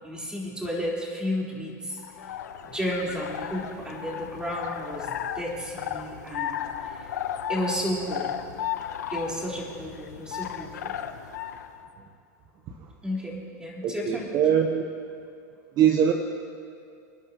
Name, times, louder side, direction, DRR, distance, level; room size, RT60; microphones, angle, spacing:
voice 1, 0.0-2.0 2.6-7.1 7.5-8.3 9.1-10.9 13.0-14.3, equal, 10° right, -4 dB, 4.4 m, -32 dB
sound 1, 2.0-11.7, left 9 dB, 80° left, 1.0 m, -35 dB
voice 2, 13.8-14.8 15.8-16.1, right 9 dB, 45° right, 4 dB, 1.1 m, -22 dB
28.0 x 11.0 x 3.1 m, 2.4 s
hypercardioid pair, 105°, 9 cm